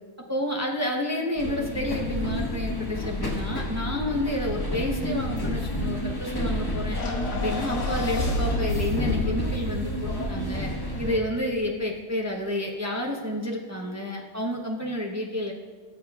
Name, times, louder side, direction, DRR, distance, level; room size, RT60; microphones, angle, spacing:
voice 1, 0.3-7.0 7.3-10.7 11.0-15.5, left 1 dB, 25° right, -1 dB, 0.3 m, -30 dB
sound 1, 1.4-11.2, left 1 dB, 15° left, 1.0 m, -30 dB
sound 2, 6.9-11.3, left 1 dB, 85° left, 2.3 m, -31 dB
18.5 x 7.3 x 2.4 m, 1.6 s
omnidirectional pair, 1.7 m